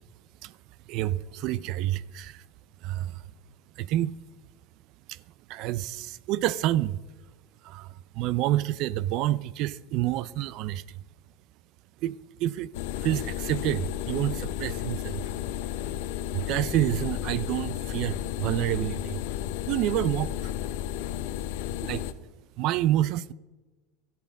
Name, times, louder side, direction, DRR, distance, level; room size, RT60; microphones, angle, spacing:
voice 1, 0.9-2.4 2.8-3.2 3.8-4.1 5.1-5.2 5.5-7.0 7.6-10.8 12.0-12.7 13.0-15.2 16.3-19.2 19.7-20.5 21.8-22.0 22.6-23.3, right 14 dB, 55° right, 0.4 m, -28 dB
sound 1, 12.7-22.1, left 11 dB, 75° left, 0.8 m, -33 dB
13.0 x 10.5 x 5.2 m
supercardioid pair, 140°, 0 cm